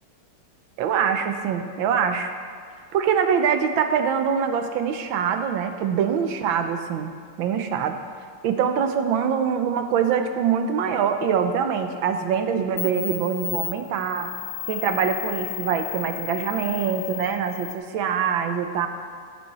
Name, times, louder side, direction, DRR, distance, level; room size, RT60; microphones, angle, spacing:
voice 1, 0.8-2.3 2.9-7.1 7.4-7.9 8.4-14.3 14.7-18.9, right 7 dB, 75° right, 7 dB, 1.4 m, -24 dB
sound 1, 12.3-12.4 12.8-17.8, left 14 dB, 85° left, 1.7 m, -34 dB
15.5 x 6.3 x 4.1 m, 2.2 s
omnidirectional pair, 2.3 m